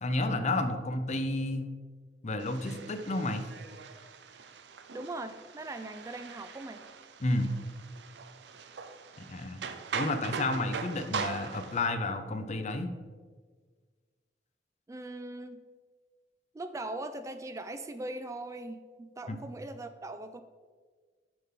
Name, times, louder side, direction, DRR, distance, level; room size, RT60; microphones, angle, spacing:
voice 1, 0.0-1.7 2.2-3.4 7.2-7.5 9.2-9.6 9.9-12.9 19.3-19.4, left 2 dB, 40° left, 8 dB, 0.6 m, -31 dB
sound 1, 2.4-11.9, right 5 dB, 70° right, 0.5 m, -41 dB
voice 2, 4.9-6.8 14.9-15.6 16.5-20.4, right 2 dB, 20° right, 10 dB, 0.3 m, -40 dB
8.9 x 5.8 x 3.8 m, 1.5 s
head